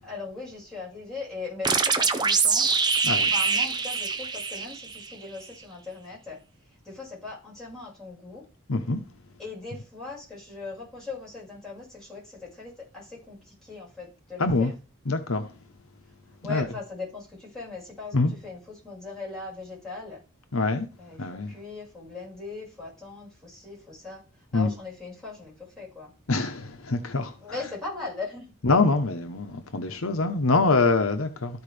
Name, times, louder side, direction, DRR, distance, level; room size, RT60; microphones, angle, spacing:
voice 1, 0.0-2.7 3.2-6.4 6.8-8.4 9.4-14.7 16.4-20.2 21.0-24.2 24.5-26.1 27.4-28.5, left 3 dB, ahead, 5.5 m, -39 dB
Effect Drum, 1.6-5.1, right 5 dB, 20° right, 0.6 m, -24 dB
voice 2, 8.7-9.0 14.4-14.7 15.1-15.5 16.5-16.7 18.1-18.3 20.5-20.9 21.2-21.6 24.5-24.7 26.3-27.3 28.6-31.6, left 3 dB, 75° left, 0.9 m, -24 dB
14.0 x 4.7 x 3.4 m
head